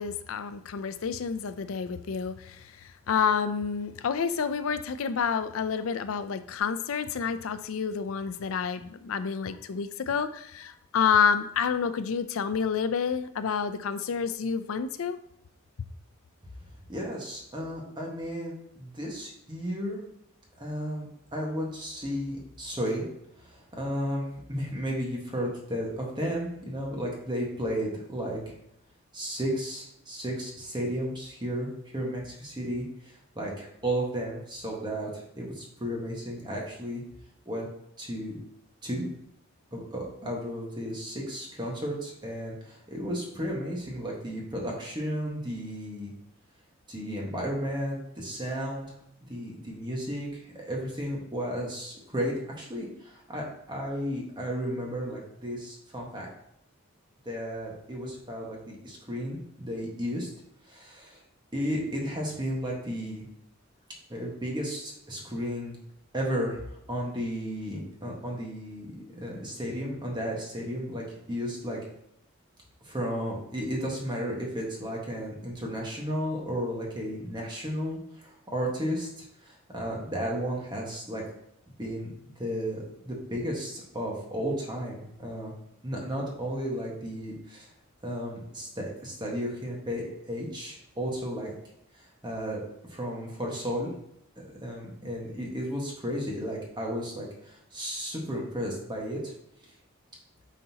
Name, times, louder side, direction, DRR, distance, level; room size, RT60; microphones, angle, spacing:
voice 1, 0.0-15.2, left 6 dB, 80° left, 12 dB, 0.4 m, -29 dB
voice 2, 16.9-20.0 20.6-23.1 23.4-28.5 29.1-37.0 37.4-37.7 38.0-38.4 38.8-39.0 39.7-46.1 46.9-48.9 49.2-56.3 57.2-60.3 60.7-61.2 61.5-63.2 64.1-65.8 66.1-71.8 72.8-81.2 81.8-85.5 85.8-87.7 88.0-91.5 91.9-92.6 92.9-93.9 94.4-99.3, equal, 20° right, -2 dB, 1.4 m, -33 dB
9.2 x 4.1 x 2.9 m, 0.77 s
head